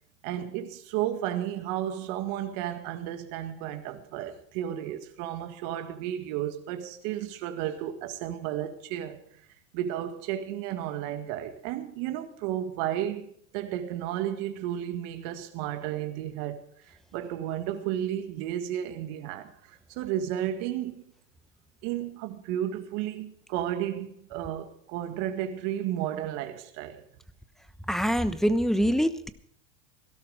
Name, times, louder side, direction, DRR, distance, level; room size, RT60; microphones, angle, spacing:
voice 1, 0.2-9.2 9.7-13.3 13.5-21.0 21.8-27.1, right 11 dB, 55° right, 1.9 m, -33 dB
voice 2, 27.9-29.3, equal, ahead, 1.0 m, -24 dB
17.0 x 12.5 x 4.9 m
hypercardioid pair, 110°, 38 cm